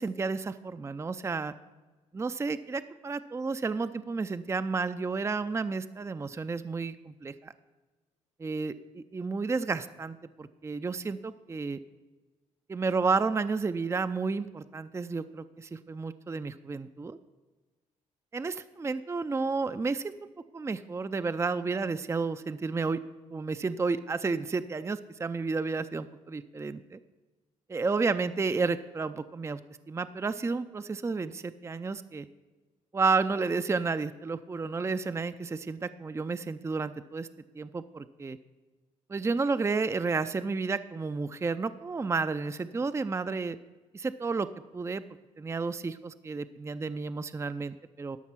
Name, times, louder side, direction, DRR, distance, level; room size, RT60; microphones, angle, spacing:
voice 1, 0.0-1.5 2.1-7.5 8.4-11.8 12.7-17.2 18.3-20.3 20.5-23.0 23.3-27.0 27.7-29.6 29.9-32.3 32.9-37.3 37.5-38.4 39.1-43.6 43.9-44.5 44.7-45.0 45.4-48.2, right 4 dB, 20° right, 11 dB, 0.4 m, -31 dB
12.0 x 5.9 x 5.7 m, 1.3 s
supercardioid pair, 65°, 14 cm